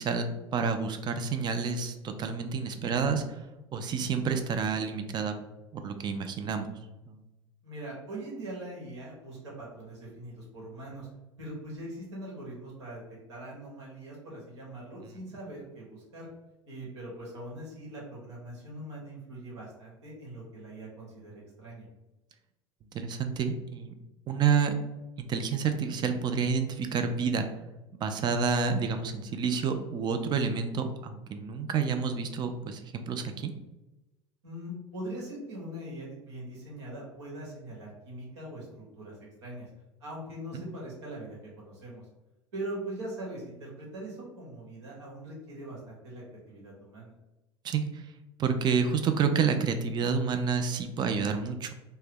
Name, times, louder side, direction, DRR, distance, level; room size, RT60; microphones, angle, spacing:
voice 1, 0.0-3.4 3.7-5.3 5.7-6.7 7.1-7.2 15.0-15.2 22.9-23.9 24.3-24.8 25.2-27.5 27.9-33.5 40.5-40.6 47.6-48.0 48.4-51.7, right 5 dB, 30° right, 8 dB, 0.4 m, -29 dB
voice 2, 7.6-11.1 11.4-16.3 16.7-21.8 34.4-38.7 38.9-39.1 39.4-39.7 40.0-42.1 42.5-47.1, right 1 dB, 70° right, -4 dB, 1.1 m, -41 dB
2.7 x 2.1 x 3.6 m, 1.0 s
figure-of-eight pair, 75°, 15 cm